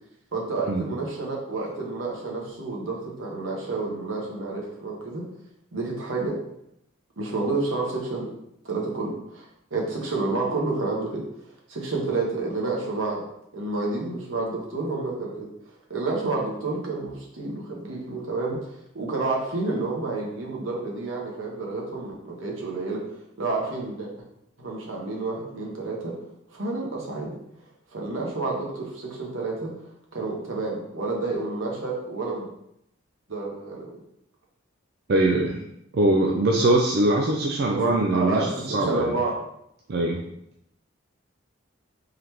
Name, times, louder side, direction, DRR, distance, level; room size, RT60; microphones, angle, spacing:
voice 1, 0.3-5.2 5.7-6.4 7.2-8.3 8.6-11.2 11.7-13.2 13.5-15.5 15.9-18.6 18.9-23.0 23.4-24.1 24.6-26.2 26.5-27.4 27.9-29.7 30.1-32.4 33.3-34.0 37.7-37.8 38.1-39.4, right 3 dB, 75° right, -2 dB, 1.0 m, -29 dB
voice 2, 35.1-35.6 35.9-39.1 39.9-40.2, right 2 dB, 50° right, 0 dB, 0.4 m, -22 dB
3.8 x 2.9 x 3.2 m, 0.78 s
head